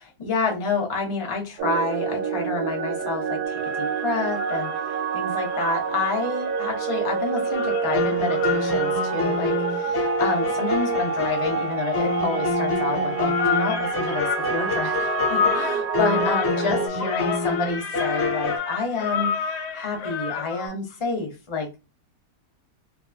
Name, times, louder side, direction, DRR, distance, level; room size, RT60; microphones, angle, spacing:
voice 1, 0.0-21.8, left 4 dB, 30° left, 0.5 m, -29 dB
sound 1, 1.6-16.9, right 6 dB, 75° right, 1.1 m, -27 dB
sound 2, 3.5-5.0 5.4-20.7, left 7 dB, 70° left, 1.4 m, -31 dB
sound 3, 7.5-18.6, left 3 dB, 50° left, 1.1 m, -27 dB
3.0 x 2.6 x 2.2 m
omnidirectional pair, 1.8 m